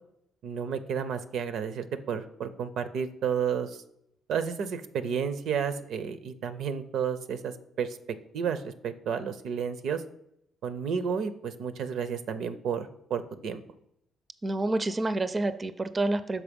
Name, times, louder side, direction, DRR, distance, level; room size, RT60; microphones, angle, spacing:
voice 1, 0.4-3.8 4.3-8.0 8.3-10.0 10.6-13.6, right 7 dB, 75° right, 11 dB, 0.5 m, -31 dB
voice 2, 14.4-16.4, right 2 dB, 25° right, 12 dB, 0.4 m, -28 dB
6.1 x 4.2 x 5.1 m, 0.77 s
cardioid pair, 90°, 0 cm